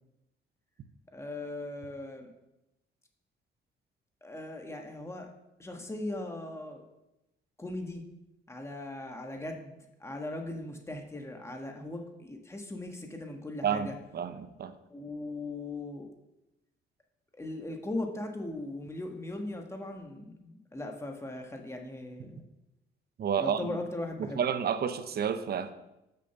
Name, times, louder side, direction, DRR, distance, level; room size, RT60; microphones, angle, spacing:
voice 1, 1.1-2.3 4.2-5.3 5.6-6.8 7.6-8.0 8.5-9.7 10.0-13.9 14.9-16.1 17.4-22.4 23.4-24.5, left 2 dB, 15° left, 3 dB, 1.4 m, -39 dB
voice 2, 13.6-14.7 23.2-23.8 24.2-25.7, right 8 dB, 55° right, 11 dB, 0.7 m, -30 dB
6.8 x 5.1 x 6.9 m, 0.92 s
cardioid pair, 90°, 20 cm